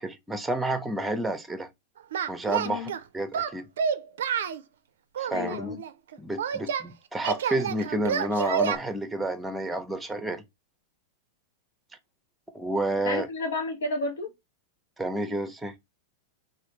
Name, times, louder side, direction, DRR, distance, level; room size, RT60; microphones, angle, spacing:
voice 1, 0.0-1.7 2.3-2.9 3.1-3.7 5.2-5.8 6.2-10.4 12.5-13.3 15.0-15.7, right 1 dB, 10° right, 0.6 m, -30 dB
Singing, 2.1-3.0 3.3-4.6 5.2-6.9 7.2-8.8, right 7 dB, 70° right, 0.4 m, -29 dB
voice 2, 5.3-5.8 13.0-14.3, left 2 dB, 70° left, 0.8 m, -31 dB
3.3 x 2.6 x 2.9 m
hypercardioid pair, 100°, 0 cm